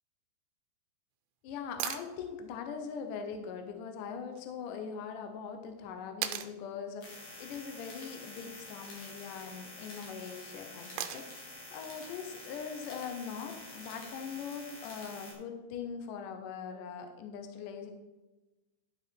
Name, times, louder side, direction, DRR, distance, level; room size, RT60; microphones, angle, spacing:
voice 1, 1.4-17.9, left 6 dB, 70° left, 5 dB, 2.2 m, -41 dB
sound 1, 1.8-2.1 4.3-4.4 6.2-6.5 8.6-9.0 11.0-11.5 13.6-13.7, right 11 dB, 85° right, 2.4 m, -37 dB
sound 2, 7.0-15.3, left 2 dB, 50° left, 2.7 m, -48 dB
12.0 x 5.6 x 4.4 m, 1.1 s
omnidirectional pair, 4.3 m